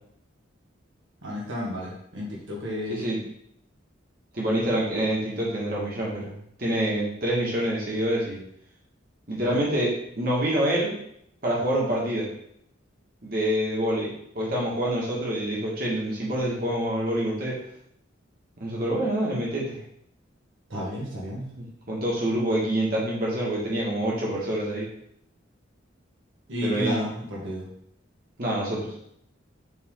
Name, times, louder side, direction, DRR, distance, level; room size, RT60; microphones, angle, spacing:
voice 1, 1.2-3.0 9.4-9.6 20.7-21.4 26.5-27.7, equal, 75° right, -4 dB, 1.6 m, -31 dB
voice 2, 4.3-8.4 9.3-9.9 10.2-10.9 11.4-12.3 13.2-17.6 18.6-19.8 21.6-24.9 26.6-26.9 28.4-28.9, right 1 dB, 45° right, -5 dB, 1.9 m, -26 dB
8.0 x 3.6 x 3.8 m, 0.72 s
head